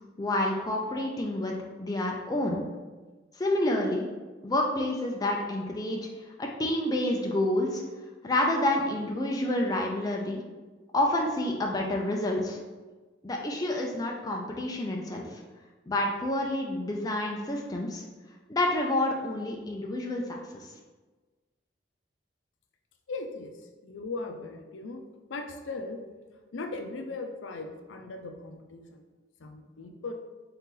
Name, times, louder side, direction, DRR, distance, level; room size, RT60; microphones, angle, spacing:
voice 1, 0.2-2.6 3.4-4.1 4.4-6.0 6.4-7.8 8.2-10.4 10.9-12.6 13.2-15.4 15.9-18.0 18.5-20.2 20.5-20.7, left 1 dB, 20° left, 0 dB, 0.4 m, -28 dB
voice 2, 23.1-26.0 26.3-29.0 29.4-30.1, left 3 dB, 80° left, 4 dB, 0.5 m, -39 dB
3.8 x 2.9 x 3.7 m, 1.3 s
head